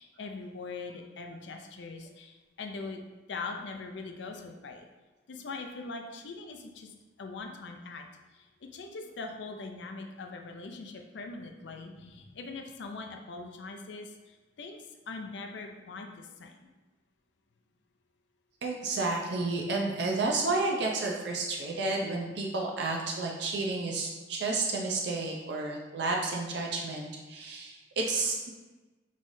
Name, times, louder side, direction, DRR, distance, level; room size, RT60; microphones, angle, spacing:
voice 1, 0.0-3.0 3.3-4.9 5.3-8.1 8.3-16.6, left 3 dB, 70° left, 3 dB, 0.5 m, -42 dB
voice 2, 18.6-28.5, right 3 dB, 65° right, -1 dB, 0.5 m, -31 dB
5.4 x 3.1 x 2.6 m, 1.2 s
head